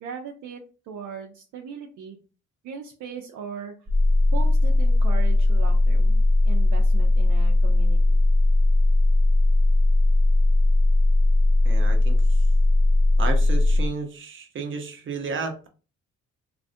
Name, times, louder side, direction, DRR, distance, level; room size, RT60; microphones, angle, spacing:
voice 1, 0.0-2.2 2.6-3.7 4.3-8.2, right 7 dB, 75° right, 1 dB, 0.5 m, -38 dB
sound 1, 3.9-13.9, left 2 dB, 20° right, 0.3 m, -18 dB
voice 2, 11.6-12.2 13.2-15.7, right 4 dB, 40° right, 5 dB, 0.7 m, -32 dB
2.3 x 2.1 x 2.6 m, 0.34 s
cardioid pair, 90°, 30 cm